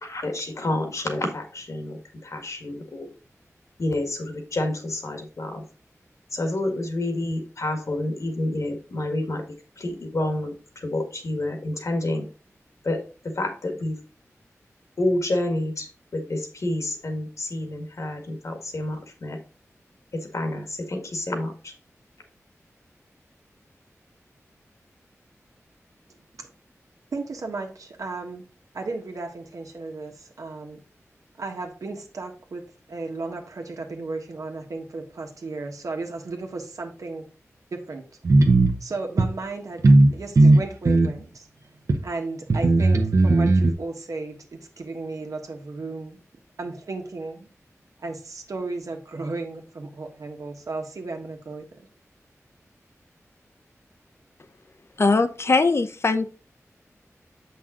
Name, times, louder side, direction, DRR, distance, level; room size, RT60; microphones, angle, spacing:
voice 1, 0.0-3.1 3.8-5.6 6.3-9.4 9.8-12.3 12.8-14.0 15.0-19.4 20.1-21.7, left 1 dB, 65° left, 5 dB, 1.8 m, -29 dB
voice 2, 27.1-28.4 28.7-30.8 31.4-32.6 32.9-37.2 37.7-38.0 38.8-39.8 40.1-41.5 42.0-46.2 46.6-47.5 48.0-51.6, right 3 dB, 85° right, 3 dB, 1.5 m, -34 dB
sound 1, 38.2-38.7 39.2-39.3 39.8-40.1 40.4-41.2 41.9-42.0 42.5-43.7, right 2 dB, 70° right, 1.0 m, -16 dB
voice 3, 55.0-56.3, left 3 dB, 50° left, 9 dB, 0.7 m, -21 dB
7.6 x 5.6 x 3.8 m, 0.36 s
wide cardioid pair, 95°, 6 cm